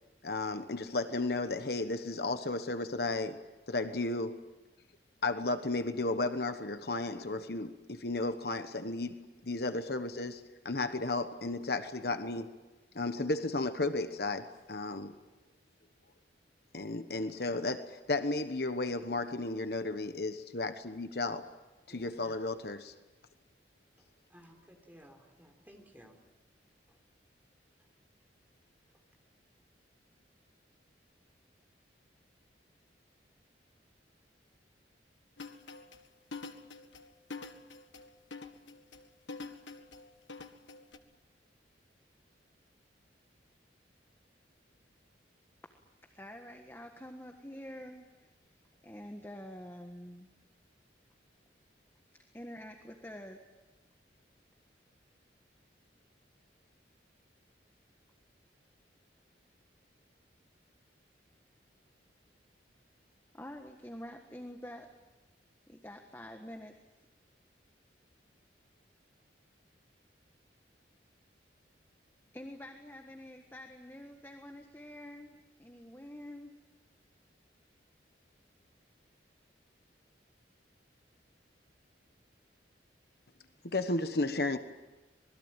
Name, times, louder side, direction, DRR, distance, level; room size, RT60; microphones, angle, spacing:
voice 1, 0.2-4.4 5.2-9.1 9.4-12.5 12.9-15.1 16.7-21.4 21.9-22.9 83.6-84.6, left 2 dB, 55° left, 9 dB, 1.2 m, -34 dB
voice 2, 24.3-26.2 26.9-27.0, equal, 10° right, 2 dB, 3.7 m, -57 dB
sound 1, 35.4-41.0, left 3 dB, 80° left, 1.8 m, -46 dB
voice 3, 46.0-48.3 48.8-50.3 52.3-53.5 63.3-65.0 65.7-66.8 72.3-76.6, left 1 dB, 10° left, 3 dB, 1.5 m, -47 dB
26.5 x 21.0 x 9.0 m, 1.1 s
head